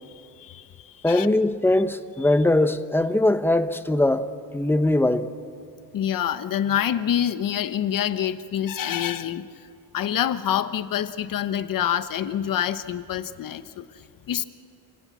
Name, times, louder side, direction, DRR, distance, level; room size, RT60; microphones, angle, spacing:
voice 1, 0.0-1.3 2.2-2.3 5.9-9.4 9.9-14.4, left 10 dB, 55° left, 1.1 m, -27 dB
voice 2, 1.0-4.3 4.5-5.3, left 1 dB, 5° left, 0.9 m, -21 dB
28.5 x 18.0 x 7.4 m
cardioid pair, 130°, 39 cm